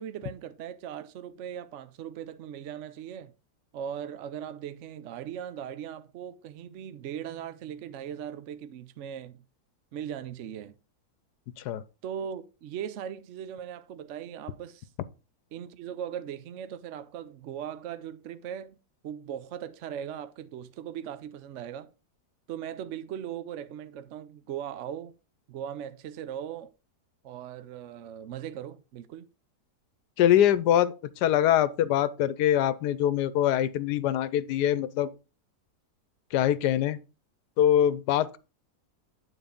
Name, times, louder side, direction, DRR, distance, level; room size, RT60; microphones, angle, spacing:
voice 1, 0.0-3.3 3.7-9.4 9.9-10.8 12.0-14.9 15.5-18.8 19.0-21.9 22.5-25.1 25.5-26.7 27.2-29.3, right 9 dB, 65° right, 0.7 m, -39 dB
voice 2, 30.2-30.9 31.2-35.1 36.3-37.0 37.6-38.4, left 11 dB, 80° left, 1.2 m, -23 dB
9.2 x 4.0 x 5.1 m
omnidirectional pair, 1.7 m